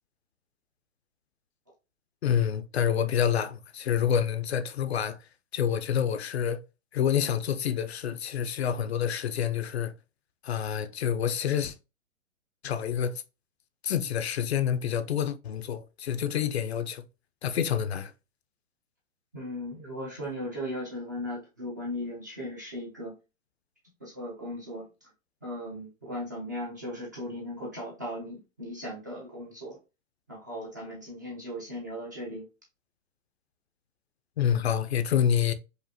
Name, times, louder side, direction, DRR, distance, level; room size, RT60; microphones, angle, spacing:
voice 1, 2.2-5.2 5.5-6.6 6.9-9.9 10.4-11.7 12.6-13.2 13.8-17.0 17.4-18.1 34.4-35.5, left 9 dB, 50° left, 0.5 m, -27 dB
voice 2, 19.3-23.1 24.0-25.1 25.4-29.8 30.3-32.5, equal, 15° right, 0.4 m, -37 dB
4.9 x 2.5 x 2.6 m
hypercardioid pair, 160°, 41 cm